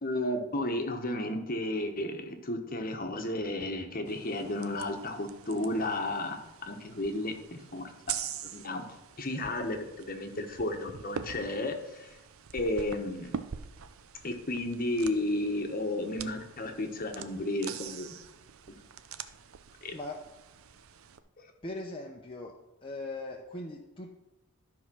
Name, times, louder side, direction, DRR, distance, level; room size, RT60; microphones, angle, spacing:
voice 1, 0.0-7.9 8.5-8.8 9.2-12.1 12.5-13.4 14.2-18.1 18.7-18.8 19.8-20.0, left 1 dB, 40° left, 5 dB, 1.2 m, -33 dB
sound 1, 4.1-21.2, right 7 dB, 75° right, 0.6 m, -44 dB
voice 2, 19.9-20.2 21.6-22.5 22.8-24.1, left 2 dB, 25° left, -1 dB, 0.8 m, -39 dB
12.5 x 4.8 x 6.2 m, 0.96 s
head